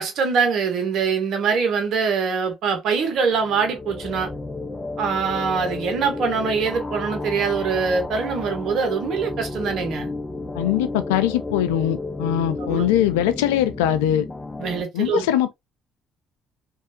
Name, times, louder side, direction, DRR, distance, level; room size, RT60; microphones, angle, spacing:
voice 1, 0.0-4.3 5.0-10.1 12.6-12.9 14.6-15.3, right 5 dB, 70° right, 1.2 m, -23 dB
sound 1, 3.2-14.8, left 2 dB, 25° left, 0.6 m, -32 dB
voice 2, 10.6-14.3 14.9-15.5, left 11 dB, 90° left, 0.4 m, -21 dB
3.2 x 2.7 x 2.7 m
hypercardioid pair, 60°, 0 cm